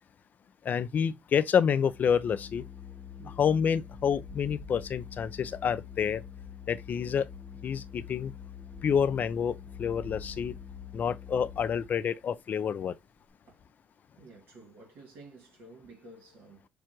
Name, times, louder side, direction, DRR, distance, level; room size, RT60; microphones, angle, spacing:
voice 1, 0.6-2.6 3.4-6.2 6.7-7.3 7.6-8.3 8.8-10.5 10.9-12.9, left 7 dB, 45° left, 0.5 m, -28 dB
Organ, 1.8-12.1, left 7 dB, ahead, 1.4 m, -45 dB
voice 2, 14.2-16.7, right 2 dB, 60° right, 2.2 m, -52 dB
6.7 x 2.5 x 3.0 m
supercardioid pair, 80°, 4 cm